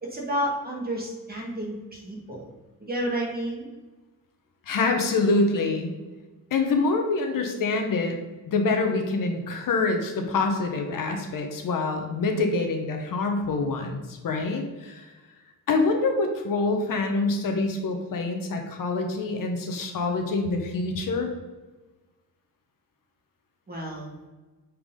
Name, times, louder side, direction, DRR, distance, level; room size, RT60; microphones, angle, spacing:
voice 1, 0.0-2.5 2.8-3.7 23.7-24.1, equal, 25° right, -1 dB, 1.9 m, -31 dB
voice 2, 4.7-5.9 6.5-8.2 8.5-15.1 15.7-21.3, left 3 dB, 60° left, 4 dB, 1.1 m, -26 dB
8.5 x 4.8 x 3.8 m, 1.2 s
cardioid pair, 135°, 37 cm